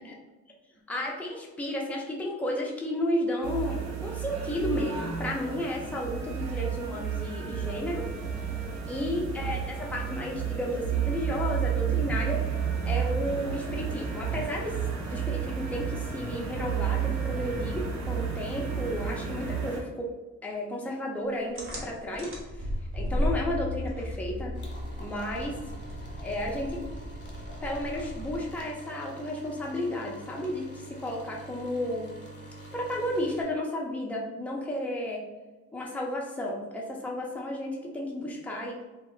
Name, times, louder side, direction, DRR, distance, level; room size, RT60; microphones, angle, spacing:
voice 1, 0.9-8.1 8.9-12.4 12.9-20.1 20.4-22.3 22.9-24.5 25.0-25.6 26.2-26.8 27.6-32.1 32.7-35.3 35.7-38.8, left 1 dB, 5° left, -2 dB, 0.5 m, -33 dB
sound 1, 3.4-19.8, right 7 dB, 65° right, 0.6 m, -32 dB
sound 2, 21.6-28.7, left 1 dB, 45° right, 0.9 m, -35 dB
sound 3, 24.5-33.4, right 1 dB, 35° left, 0.9 m, -46 dB
2.1 x 2.1 x 3.7 m, 1.2 s
cardioid pair, 90°, 30 cm